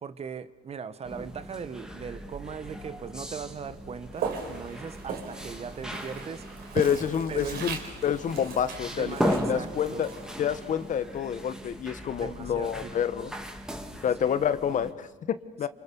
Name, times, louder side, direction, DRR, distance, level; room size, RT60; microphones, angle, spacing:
voice 1, 0.0-6.5 7.3-7.7 8.9-10.2 12.2-13.3 14.2-14.3, right 6 dB, 35° right, 14 dB, 1.1 m, -39 dB
sound 1, 1.0-14.9, equal, 5° right, 2.5 m, -37 dB
Walk footsteps, 4.1-11.3, right 6 dB, 70° right, 4.4 m, -39 dB
voice 2, 6.7-7.8 8.0-10.1 10.4-13.3 14.0-15.7, left 8 dB, 50° left, 13 dB, 1.3 m, -28 dB
28.0 x 26.5 x 7.0 m, 1.0 s
cardioid pair, 110°, 17 cm